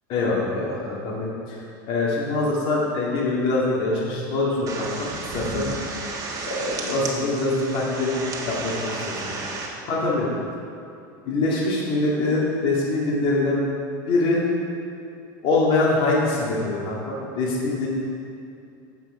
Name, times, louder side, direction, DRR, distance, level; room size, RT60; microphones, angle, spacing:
voice 1, 0.1-1.6 1.9-5.7 6.5-8.1 8.4-9.4 9.9-10.3 11.3-13.6 14.1-14.4 15.4-17.9, left 2 dB, 50° left, -5 dB, 2.1 m, -24 dB
sound 1, 4.7-9.7, right 3 dB, 30° right, 1.5 m, -32 dB
8.3 x 8.2 x 4.9 m, 2.6 s
supercardioid pair, 120°, 11 cm